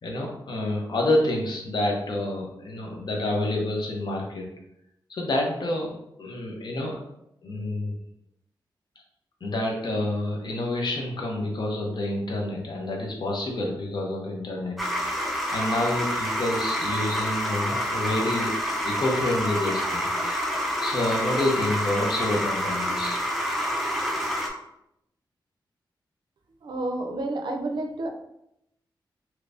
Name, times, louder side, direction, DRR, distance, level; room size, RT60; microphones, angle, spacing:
voice 1, 0.0-4.5 5.1-5.9 6.2-7.0 7.4-7.9 9.4-18.5 18.8-20.5 20.8-23.2, left 1 dB, 60° left, -1 dB, 0.8 m, -28 dB
sound 1, 14.8-24.5, equal, ahead, 0.6 m, -28 dB
voice 2, 26.6-28.1, right 2 dB, 65° right, 3 dB, 0.5 m, -30 dB
3.3 x 3.0 x 2.6 m, 0.81 s
cardioid pair, 80°, 8 cm